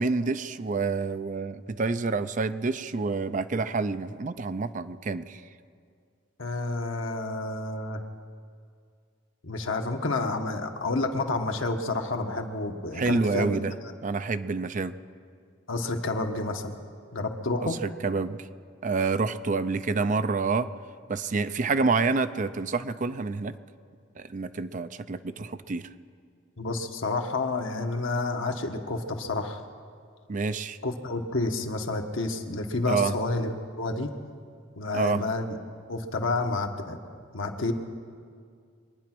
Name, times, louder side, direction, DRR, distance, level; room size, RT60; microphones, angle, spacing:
voice 1, 0.0-5.4 12.9-13.7 14.0-14.9 17.6-18.5 18.8-20.7 21.1-23.5 24.2-25.9 30.3-30.8 32.9-33.1 34.9-35.2, right 4 dB, 40° right, 12 dB, 0.5 m, -28 dB
voice 2, 6.4-8.0 9.4-13.6 15.7-16.8 17.1-17.8 26.6-29.6 30.8-34.1 34.8-35.6 35.9-37.0 37.3-37.7, left 2 dB, 80° left, 4 dB, 1.3 m, -29 dB
24.5 x 9.7 x 6.0 m, 2.2 s
head